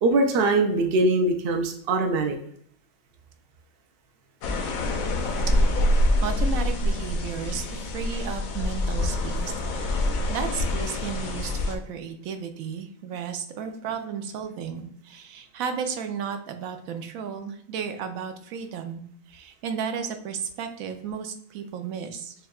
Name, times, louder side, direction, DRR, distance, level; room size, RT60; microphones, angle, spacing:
voice 1, 0.0-2.3, right 2 dB, 60° right, 4 dB, 0.7 m, -22 dB
sound 1, 4.4-11.8, left 1 dB, 85° left, 1.1 m, -25 dB
voice 2, 6.2-22.3, right 6 dB, 85° right, 7 dB, 1.0 m, -34 dB
6.3 x 2.2 x 2.3 m, 0.68 s
omnidirectional pair, 1.4 m